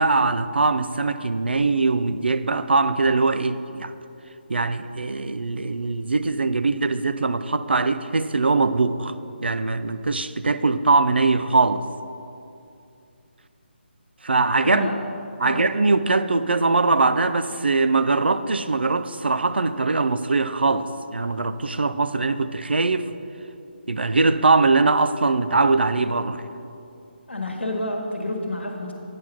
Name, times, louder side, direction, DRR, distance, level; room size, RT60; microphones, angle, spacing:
voice 1, 0.0-3.9 4.5-9.1 9.4-11.8 14.2-14.9 15.4-23.1 23.9-26.4, right 3 dB, 65° right, 11 dB, 0.4 m, -21 dB
voice 2, 14.6-15.0 15.4-15.7 27.3-28.9, left 1 dB, 80° left, 2 dB, 1.2 m, -29 dB
8.9 x 4.7 x 5.7 m, 2.6 s
figure-of-eight pair, 150°, 6 cm